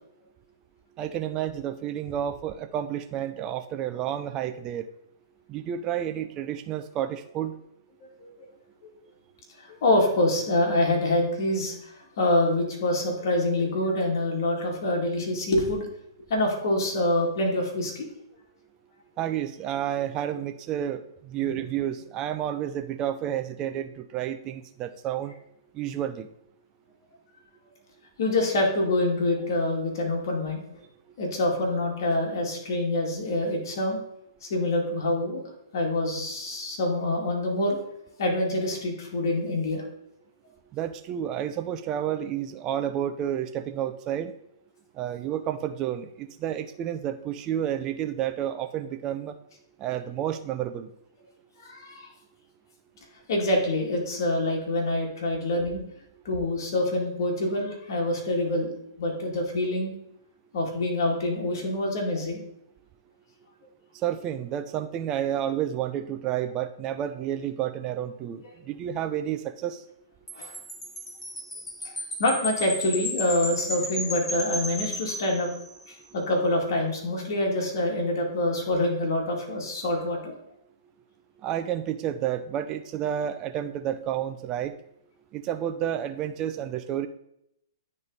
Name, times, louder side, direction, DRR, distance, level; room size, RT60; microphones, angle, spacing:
voice 1, 1.0-4.9 5.5-7.5 19.2-25.3 25.7-26.3 40.7-44.3 45.0-49.3 49.8-50.9 64.0-69.8 81.4-84.7 85.3-87.1, right 10 dB, 30° right, 9 dB, 0.4 m, -30 dB
voice 2, 8.0-8.5 8.8-8.9 9.6-15.9 16.3-18.1 21.4-21.5 28.2-30.8 31.2-34.0 34.4-37.8 38.2-39.8 51.6-52.1 53.3-55.8 56.2-58.7 59.0-59.9 60.5-62.4 70.3-70.5 71.8-71.9 72.2-75.5 75.9-80.3, left 1 dB, 60° left, 0 dB, 2.1 m, -26 dB
Wind chime, 70.3-76.0, left 1 dB, 10° left, 1.3 m, -34 dB
9.5 x 3.6 x 4.0 m, 0.78 s
hypercardioid pair, 130°, 2 cm